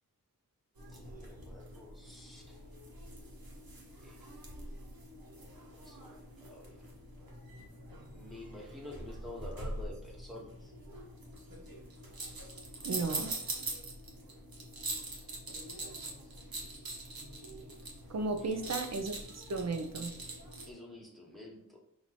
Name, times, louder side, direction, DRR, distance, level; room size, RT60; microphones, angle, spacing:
sound 1, 0.8-20.7, right 2 dB, 85° right, 1.1 m, -44 dB
voice 1, 0.9-2.7 4.0-4.2 5.5-6.1 6.4-6.8 8.1-10.7 18.4-18.6 20.7-21.8, left 1 dB, ahead, -2 dB, 1.3 m, -49 dB
voice 2, 12.8-13.3 18.1-20.1, right 3 dB, 50° right, 8 dB, 0.6 m, -35 dB
5.8 x 2.7 x 3.0 m, 0.83 s
wide cardioid pair, 80°, 35 cm